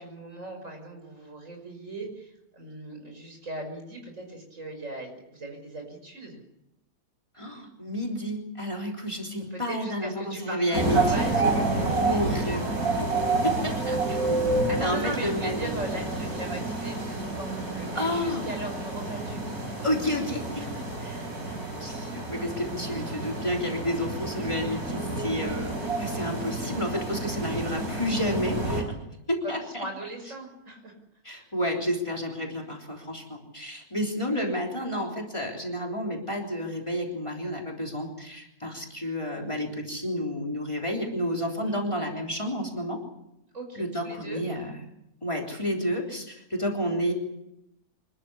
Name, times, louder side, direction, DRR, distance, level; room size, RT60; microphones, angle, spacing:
voice 1, 0.0-6.4 9.5-12.3 14.7-19.9 20.6-21.6 26.1-26.3 27.3-27.4 29.4-30.9 41.3-41.8 43.5-44.4, right 2 dB, 55° right, 3 dB, 6.0 m, -39 dB
voice 2, 7.4-11.1 12.0-12.7 13.0-13.1 13.4-15.5 17.9-18.5 19.8-20.6 21.8-28.8 29.3-29.9 31.2-43.0 43.8-44.7 45.2-47.1, equal, 20° left, 0 dB, 3.6 m, -30 dB
sound 1, 10.7-28.8, right 2 dB, 75° right, 5.7 m, -29 dB
25.5 x 13.5 x 9.8 m, 0.84 s
omnidirectional pair, 1.6 m